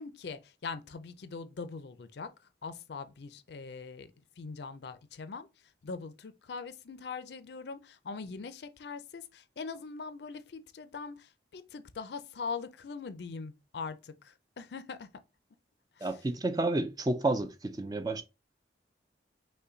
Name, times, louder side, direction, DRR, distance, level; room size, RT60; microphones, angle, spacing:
voice 1, 0.0-2.3 2.6-4.1 4.4-5.5 5.8-15.1 16.0-16.2, left 4 dB, 65° left, 0.5 m, -42 dB
voice 2, 16.0-18.2, right 2 dB, 20° right, 0.4 m, -30 dB
5.5 x 2.2 x 3.8 m
head